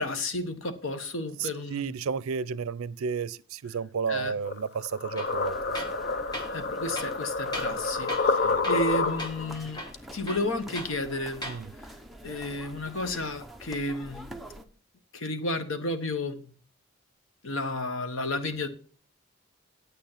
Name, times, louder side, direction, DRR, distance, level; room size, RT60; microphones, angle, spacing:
voice 1, 0.0-2.0 4.1-4.3 6.5-9.9 10.1-11.5 12.2-14.3 15.1-16.5 17.4-18.7, left 1 dB, 70° left, 1.2 m, -32 dB
voice 2, 1.4-5.8 8.4-8.7 11.5-11.7, right 6 dB, 85° right, 0.5 m, -32 dB
sound 1, 4.4-9.5, left 4 dB, 50° left, 0.7 m, -29 dB
Tools, 5.2-5.4 5.7-6.0 6.3-6.5 6.9-7.8 8.1-8.4 8.6-8.9 9.2-9.3 9.7-11.0 11.3-11.6, equal, 20° left, 1.5 m, -38 dB
sound 2, 5.2-14.7, right 1 dB, ahead, 0.7 m, -46 dB
9.1 x 8.6 x 5.7 m
head